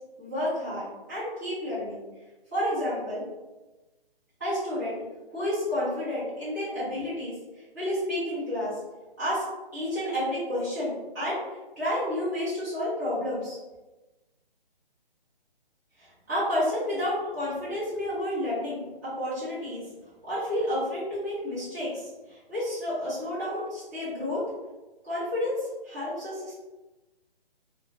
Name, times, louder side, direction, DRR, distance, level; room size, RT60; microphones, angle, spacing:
voice 1, 0.2-2.0 2.5-3.2 4.4-5.0 5.3-7.3 7.7-8.8 9.2-9.4 9.7-11.4 11.8-13.6 16.0-19.8 20.2-24.4 25.0-25.6 25.8-26.5, left 1 dB, 20° right, -13 dB, 0.8 m, -30 dB
3.1 x 2.0 x 2.4 m, 1.1 s
hypercardioid pair, 175°, 30 cm